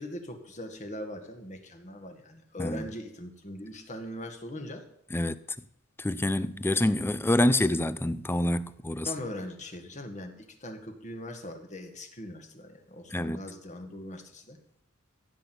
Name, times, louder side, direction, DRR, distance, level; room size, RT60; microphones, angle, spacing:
voice 1, 0.0-4.9 9.0-14.6, left 1 dB, 35° left, 1.8 m, -40 dB
voice 2, 6.0-9.1 13.1-13.4, left 1 dB, 10° left, 0.5 m, -26 dB
15.5 x 6.0 x 8.1 m
head